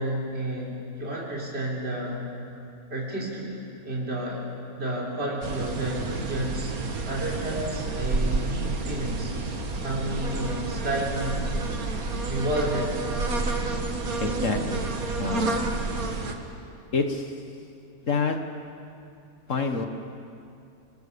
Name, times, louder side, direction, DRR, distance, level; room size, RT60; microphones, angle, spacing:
voice 1, 0.0-2.2 2.9-3.5 3.8-4.4 4.8-6.7 7.1-9.3 9.8-11.5 12.0-12.9, right 1 dB, 45° right, -4 dB, 4.1 m, -31 dB
sound 1, 5.4-16.3, right 3 dB, 80° right, 2.2 m, -29 dB
voice 2, 14.2-14.9 15.2-15.6 16.9-17.4 18.0-18.4 19.5-19.9, left 4 dB, 60° left, 5 dB, 1.8 m, -27 dB
30.0 x 20.5 x 7.0 m, 2.5 s
omnidirectional pair, 1.5 m